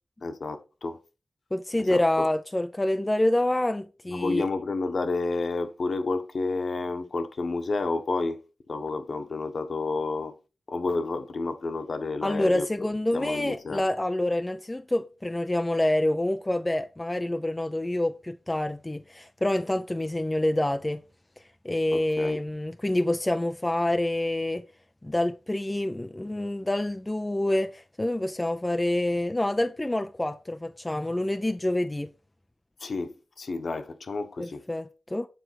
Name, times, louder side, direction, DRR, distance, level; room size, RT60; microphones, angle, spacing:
voice 1, 0.2-1.0 1.8-2.3 4.1-8.4 8.7-10.3 10.7-12.7 13.1-13.9 21.9-22.4 32.8-34.6, left 3 dB, 60° left, 1.3 m, -30 dB
voice 2, 1.5-4.5 12.2-21.0 21.6-24.6 25.0-32.1 34.4-35.3, left 1 dB, 15° left, 0.5 m, -27 dB
9.1 x 4.5 x 4.7 m
wide cardioid pair, 125°, 0 cm